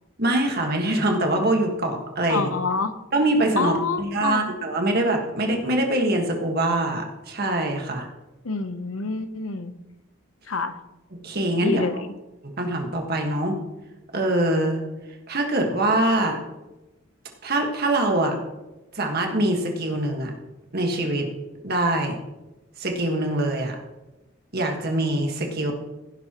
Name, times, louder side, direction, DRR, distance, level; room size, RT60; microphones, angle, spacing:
voice 1, 0.2-2.5 3.1-8.1 11.2-11.9 12.4-13.6 14.1-14.8 15.3-16.4 17.4-18.4 19.0-20.3 20.7-21.3 21.6-22.2 22.8-23.8 24.5-25.7, right 1 dB, 50° right, 2 dB, 1.6 m, -23 dB
voice 2, 2.3-3.0 3.6-4.5 8.4-9.7 10.5-10.8 11.6-12.1, left 4 dB, 80° left, 10 dB, 0.9 m, -27 dB
16.0 x 11.0 x 3.0 m, 1.0 s
head